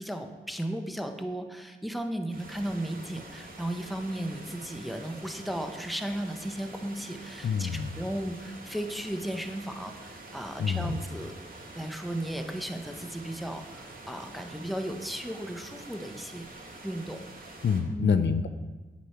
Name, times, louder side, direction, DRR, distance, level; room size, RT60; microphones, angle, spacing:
voice 1, 0.0-11.5 11.7-16.5 16.8-17.2 17.9-18.1, right 1 dB, ahead, 6 dB, 1.0 m, -35 dB
sound 1, 2.3-17.8, right 2 dB, 45° right, 2.2 m, -46 dB
voice 2, 7.4-7.9 10.6-11.0 17.6-18.5, left 6 dB, 60° left, 10 dB, 0.5 m, -26 dB
8.3 x 8.0 x 4.5 m, 1.2 s
cardioid pair, 50°, 20 cm